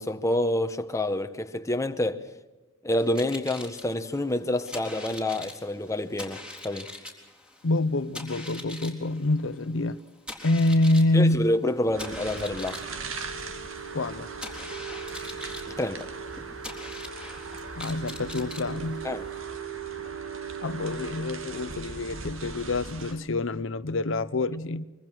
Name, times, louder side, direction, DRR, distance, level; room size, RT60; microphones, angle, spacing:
voice 1, 0.0-2.3 2.8-6.9 11.1-12.8 15.6-16.1 19.0-19.3, left 1 dB, 15° left, 1.1 m, -28 dB
sound 1, 3.0-19.4, left 2 dB, 5° right, 3.8 m, -43 dB
voice 2, 7.6-10.0 10.4-11.5 13.9-14.3 17.7-19.1 20.6-24.8, left 2 dB, 65° left, 0.8 m, -26 dB
sound 2, 11.9-23.1, right 5 dB, 80° right, 2.5 m, -38 dB
24.5 x 23.0 x 6.2 m
head